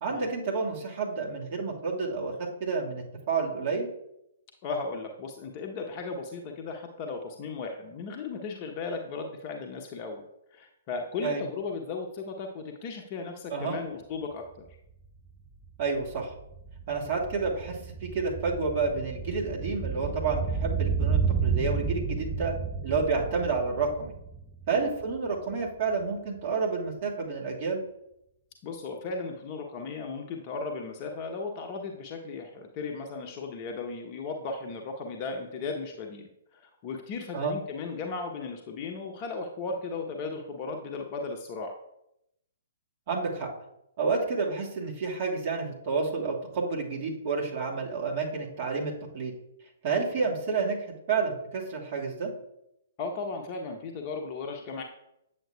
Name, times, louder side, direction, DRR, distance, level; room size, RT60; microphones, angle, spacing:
voice 1, 0.0-3.9 11.2-11.4 13.5-13.8 15.8-16.3 16.9-22.5 22.8-24.1 24.7-27.8 37.3-37.6 43.1-43.5 44.0-49.3 49.8-50.8 51.1-52.3, right 4 dB, 40° right, -1 dB, 1.7 m, -30 dB
voice 2, 4.6-10.2 10.5-14.7 24.7-24.9 28.6-41.7 53.0-54.8, left 4 dB, 30° left, 2 dB, 0.7 m, -36 dB
sound 1, 14.7-14.8 15.0-25.4 25.7-25.8, right 5 dB, ahead, 0.4 m, -32 dB
9.0 x 7.1 x 2.2 m, 0.82 s
figure-of-eight pair, 120°, 0 cm